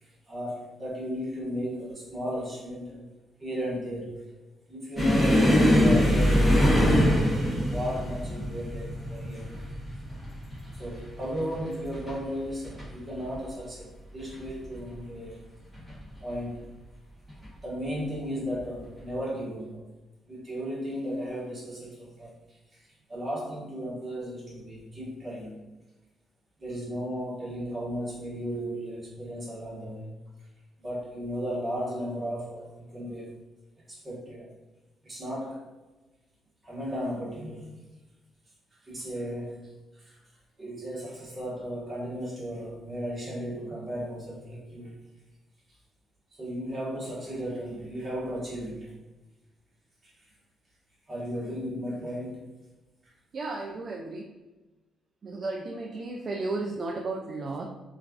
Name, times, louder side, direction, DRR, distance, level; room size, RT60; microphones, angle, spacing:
voice 1, 0.0-3.1 3.4-4.3 4.7-7.0 7.6-9.8 10.8-15.4 16.2-16.7 17.6-19.8 20.3-25.6 26.6-30.1 30.8-33.4 33.9-34.5 35.0-35.6 36.6-37.8 38.7-40.2 40.6-45.0 46.3-48.9 50.0-50.3 51.1-52.6 53.0-53.1, equal, 25° right, -6 dB, 1.3 m, -35 dB
sound 1, 5.0-12.2 12.5-12.9 13.2-13.4 14.2-14.8 15.7-15.9 17.3-17.5, left 1 dB, ahead, 1.2 m, -23 dB
voice 2, 53.3-54.4 55.2-57.7, right 3 dB, 45° right, 0 dB, 0.3 m, -34 dB
3.0 x 2.4 x 2.4 m, 1.1 s
cardioid pair, 90°, 0 cm